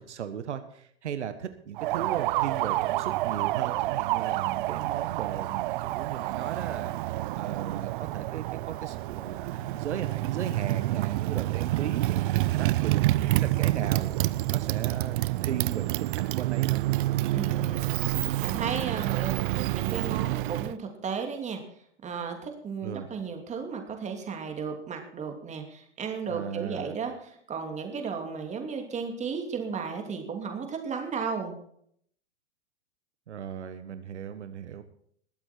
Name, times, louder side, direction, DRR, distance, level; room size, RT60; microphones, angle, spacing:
voice 1, 0.0-16.8 22.8-23.1 26.3-27.0 33.3-34.8, right 8 dB, 80° right, 10 dB, 1.4 m, -37 dB
Motorcycle, 1.8-20.7, right 17 dB, 50° right, 0.6 m, -28 dB
voice 2, 17.3-17.9 18.4-21.6 22.0-31.5, right 5 dB, 20° right, 4 dB, 2.8 m, -34 dB
21.0 x 8.1 x 4.5 m, 0.65 s
hypercardioid pair, 115°, 35 cm